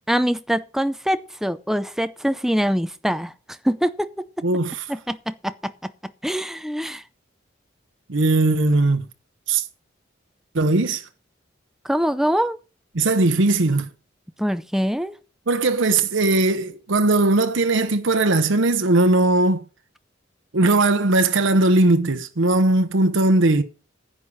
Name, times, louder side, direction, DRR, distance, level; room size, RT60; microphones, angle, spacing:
voice 1, 0.1-3.3 3.6-4.1 4.9-5.9 6.2-7.0 11.8-12.6 14.4-15.1, equal, ahead, 0.5 m, -24 dB
voice 2, 4.4-4.9 8.1-9.0 9.5-9.6 10.5-11.1 12.9-13.9 15.5-19.6 20.5-23.6, right 2 dB, 80° right, 0.9 m, -19 dB
10.0 x 8.4 x 5.3 m
head